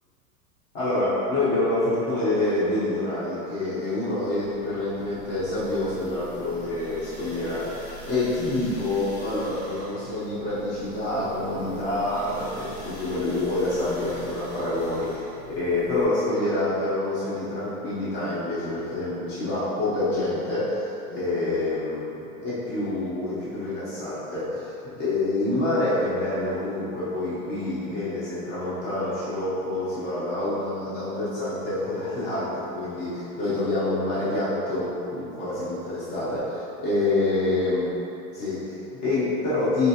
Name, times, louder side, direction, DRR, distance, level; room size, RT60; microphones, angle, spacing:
voice 1, 0.7-15.2 15.5-37.9 38.3-39.9, left 2 dB, 25° left, -11 dB, 0.8 m, -27 dB
sound 1, 4.1-16.0, right 1 dB, 5° right, 0.6 m, -44 dB
4.5 x 2.5 x 2.7 m, 2.8 s
supercardioid pair, 170°, 43 cm